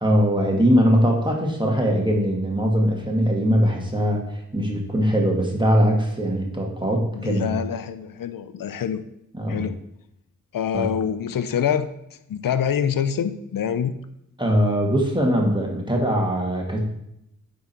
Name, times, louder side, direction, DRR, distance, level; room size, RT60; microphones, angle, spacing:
voice 1, 0.0-7.6 9.3-9.6 10.7-10.9 14.4-16.8, equal, 15° right, -1 dB, 1.9 m, -21 dB
voice 2, 7.1-9.0 9.5-9.8 10.5-11.9 12.3-13.9, left 8 dB, 75° left, 11 dB, 0.5 m, -25 dB
9.5 x 3.8 x 4.4 m, 0.80 s
cardioid pair, 45°, 34 cm